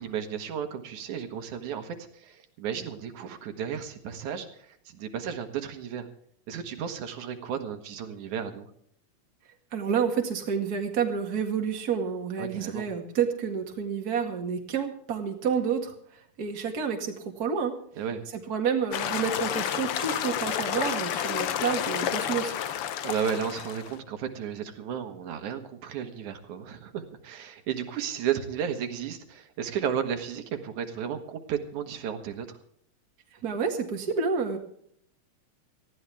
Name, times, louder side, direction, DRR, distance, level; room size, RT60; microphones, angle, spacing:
voice 1, 0.0-6.1 6.5-8.7 12.4-12.9 18.0-18.2 23.0-32.6, right 8 dB, 85° right, 6 dB, 2.8 m, -33 dB
voice 2, 9.7-17.8 18.5-22.5 33.4-34.6, right 6 dB, 35° right, 3 dB, 2.2 m, -29 dB
sound 1, 18.9-24.0, left 10 dB, 65° left, 1.5 m, -30 dB
19.0 x 14.5 x 3.4 m, 0.65 s
omnidirectional pair, 3.4 m